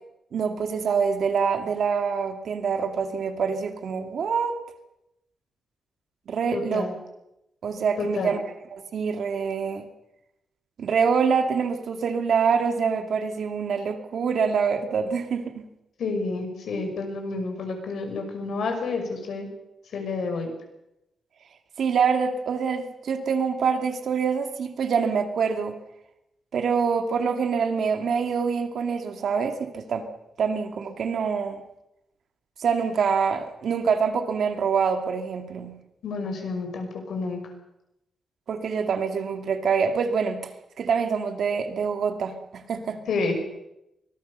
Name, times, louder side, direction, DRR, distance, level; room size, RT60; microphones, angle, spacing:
voice 1, 0.3-4.5 6.3-6.9 7.6-8.4 8.7-9.9 10.8-15.7 21.8-25.8 26.5-30.1 30.4-31.6 32.6-35.8 38.5-40.4 40.8-43.0, right 6 dB, 60° right, 6 dB, 2.4 m, -25 dB
voice 2, 6.5-6.9 8.0-8.3 16.0-19.5 19.9-20.5 36.0-37.4 43.1-43.4, left 3 dB, 70° left, 4 dB, 6.0 m, -29 dB
24.5 x 19.5 x 6.8 m, 0.87 s
wide cardioid pair, 170°, 0 cm